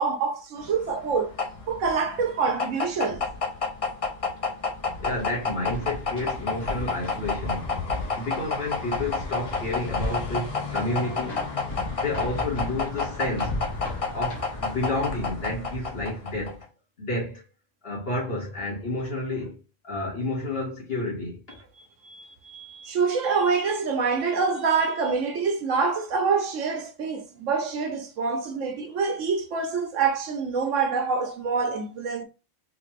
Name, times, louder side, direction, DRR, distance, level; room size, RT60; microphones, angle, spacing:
voice 1, 0.0-1.3 1.7-3.2 22.0-32.2, right 5 dB, 80° right, 1.1 m, -26 dB
sound 1, 0.6-16.6, left 4 dB, 35° left, 0.6 m, -30 dB
sound 2, 4.9-14.7, left 1 dB, 75° left, 1.8 m, -44 dB
voice 2, 5.0-7.8 8.2-11.4 12.0-13.6 14.1-16.7 17.0-17.4 17.8-21.7, left 2 dB, 50° left, 1.7 m, -30 dB
3.8 x 2.5 x 3.2 m
omnidirectional pair, 1.3 m